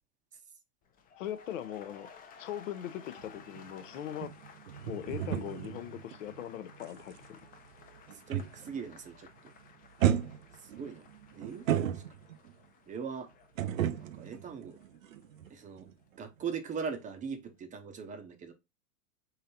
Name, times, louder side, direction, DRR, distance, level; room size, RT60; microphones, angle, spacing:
sound 1, 0.8-16.9 17.2-17.6, left 6 dB, 20° left, 0.5 m, -57 dB
voice 1, 1.2-2.1 2.4-4.3 4.8-7.4, left 11 dB, 75° left, 0.7 m, -40 dB
sound 2, 3.2-8.9 9.1-9.5 10.0-12.5 13.6-15.5 15.8-15.9, right 10 dB, 85° right, 0.6 m, -34 dB
voice 2, 8.3-9.5 10.6-11.1 11.3-12.0 12.9-13.3 14.0-14.8 15.5-15.9 16.2-18.5, right 6 dB, 20° right, 0.6 m, -40 dB
3.9 x 2.8 x 4.1 m
hypercardioid pair, 115°, 39 cm